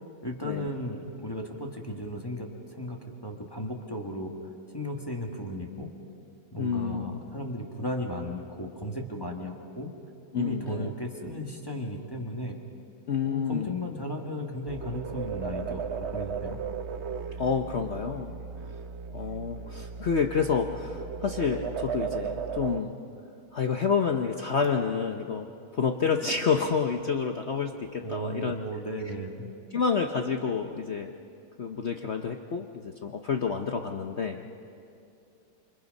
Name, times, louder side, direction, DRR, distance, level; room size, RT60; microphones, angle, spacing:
voice 1, 0.2-4.3 4.7-5.9 6.5-9.9 10.3-12.6 13.2-16.6 28.0-29.5, equal, 10° left, 0 dB, 1.6 m, -35 dB
voice 2, 6.6-7.2 10.3-10.9 13.1-13.8 17.4-18.3 19.1-23.0 23.5-28.6 29.7-31.1 31.6-34.6, left 6 dB, 70° left, 5 dB, 0.6 m, -29 dB
sound 1, 14.7-22.8, right 6 dB, 65° right, 0.6 m, -36 dB
27.5 x 25.0 x 5.4 m, 2.5 s
omnidirectional pair, 2.3 m